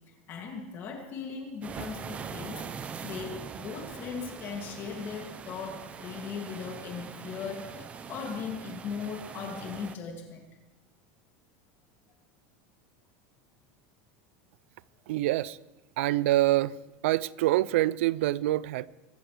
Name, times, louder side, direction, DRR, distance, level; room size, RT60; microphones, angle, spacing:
voice 1, 0.3-2.6 3.0-10.6, left 6 dB, 35° left, 2.6 m, -38 dB
sound 1, 1.6-9.9, right 6 dB, 20° right, 0.6 m, -42 dB
voice 2, 15.1-15.6 16.0-16.8 17.0-18.9, right 16 dB, 80° right, 0.4 m, -25 dB
24.0 x 14.0 x 3.4 m
supercardioid pair, 170°, 7 cm